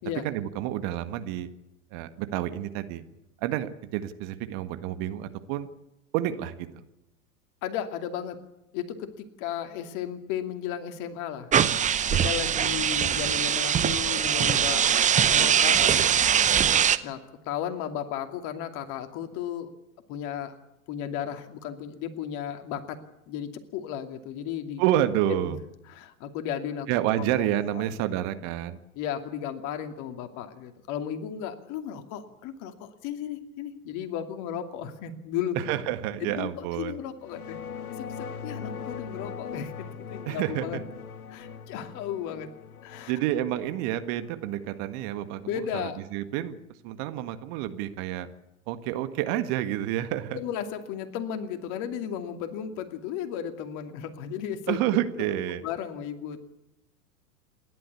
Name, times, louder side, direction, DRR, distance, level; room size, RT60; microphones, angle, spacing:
voice 1, 0.2-1.5 1.9-3.0 3.4-5.7 6.1-6.7 24.8-25.6 26.9-28.8 35.6-37.0 40.3-40.8 43.1-46.6 46.8-48.3 48.7-50.4 54.7-55.6, right 12 dB, 45° right, 10 dB, 1.8 m, -29 dB
voice 2, 7.6-8.4 8.7-11.5 12.1-14.9 15.2-16.3 17.0-19.7 20.1-20.5 20.9-23.0 23.3-24.8 25.3-25.6 25.9-26.9 27.3-27.5 27.8-27.9 28.9-35.7 36.2-37.6 37.9-39.7 40.1-40.8 41.3-42.5 42.8-43.1 45.5-46.0 50.3-54.8 55.2-55.3 55.6-56.4, left 9 dB, 45° left, 7 dB, 2.7 m, -34 dB
sound 1, 11.5-17.0, right 8 dB, 15° right, 0.9 m, -22 dB
sound 2, 37.2-45.9, left 6 dB, 80° left, 1.5 m, -41 dB
28.0 x 12.0 x 8.5 m, 0.92 s
hypercardioid pair, 100°, 43 cm